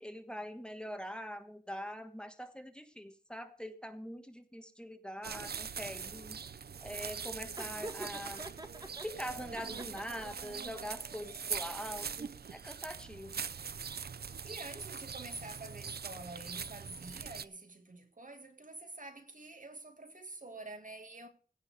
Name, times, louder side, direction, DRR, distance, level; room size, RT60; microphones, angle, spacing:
voice 1, 0.0-6.4 6.8-8.4 9.0-13.4, equal, 5° left, 1.4 m, -43 dB
sound 1, 5.2-17.5, right 6 dB, 90° right, 0.5 m, -42 dB
Laughter, 7.6-9.1 9.5-10.4, right 1 dB, 25° right, 1.5 m, -45 dB
voice 2, 14.4-21.3, right 2 dB, 55° right, 2.1 m, -47 dB
16.5 x 5.7 x 6.6 m
wide cardioid pair, 75°, 16 cm